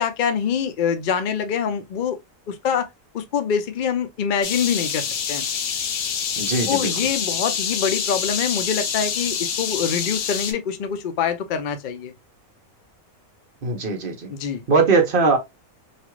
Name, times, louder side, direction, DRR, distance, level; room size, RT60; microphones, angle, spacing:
voice 1, 0.0-2.2 2.5-2.9 3.1-5.4 6.7-12.1 14.3-14.6, left 7 dB, 70° left, 0.4 m, -25 dB
sound 1, 4.4-10.5, left 7 dB, 85° left, 1.1 m, -26 dB
voice 2, 6.4-6.9 13.6-14.3 14.7-15.4, right 4 dB, 45° right, 0.8 m, -20 dB
3.0 x 2.4 x 3.0 m
omnidirectional pair, 1.5 m